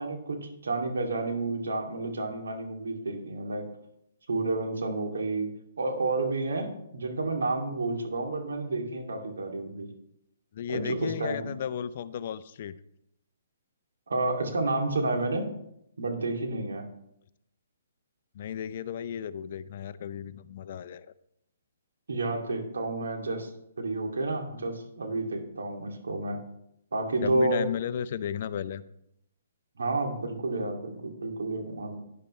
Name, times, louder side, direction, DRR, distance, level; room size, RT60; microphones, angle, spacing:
voice 1, 0.0-3.7 4.3-5.5 5.8-9.9 10.7-11.4 14.1-15.5 16.0-16.8 22.1-23.5 23.8-26.4 26.9-27.6 29.8-32.0, right 2 dB, 85° right, 2 dB, 2.5 m, -30 dB
voice 2, 10.5-12.8 18.3-21.1 27.2-28.8, left 9 dB, 50° left, 15 dB, 0.6 m, -34 dB
12.0 x 10.0 x 3.2 m, 0.77 s
hypercardioid pair, 145°, 0 cm